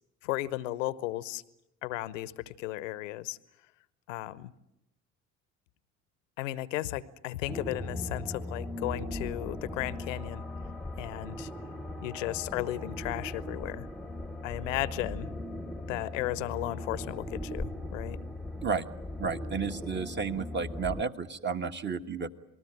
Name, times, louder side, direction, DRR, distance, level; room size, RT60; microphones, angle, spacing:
voice 1, 0.2-1.4 1.8-3.4 4.1-4.5 6.4-10.4 11.0-11.5 12.0-13.9 14.4-15.3 15.9-18.2, left 15 dB, 70° left, 19 dB, 0.9 m, -35 dB
sound 1, 7.5-21.0, left 1 dB, ahead, 1.1 m, -39 dB
voice 2, 19.2-22.3, right 5 dB, 25° right, 8 dB, 1.5 m, -32 dB
27.5 x 19.5 x 8.9 m, 0.87 s
figure-of-eight pair, 50°, 39 cm